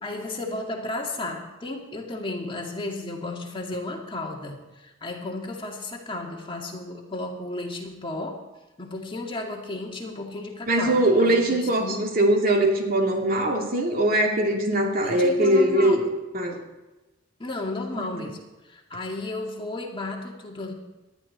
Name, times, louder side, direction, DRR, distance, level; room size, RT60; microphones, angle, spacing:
voice 1, 0.0-8.5 8.8-12.2 15.0-16.1 17.4-18.4 18.6-20.7, left 2 dB, 30° left, 0 dB, 2.2 m, -33 dB
voice 2, 10.7-16.0 16.3-16.5 17.9-18.1, right 1 dB, 50° right, 1 dB, 2.7 m, -21 dB
19.0 x 12.5 x 4.3 m, 1.1 s
head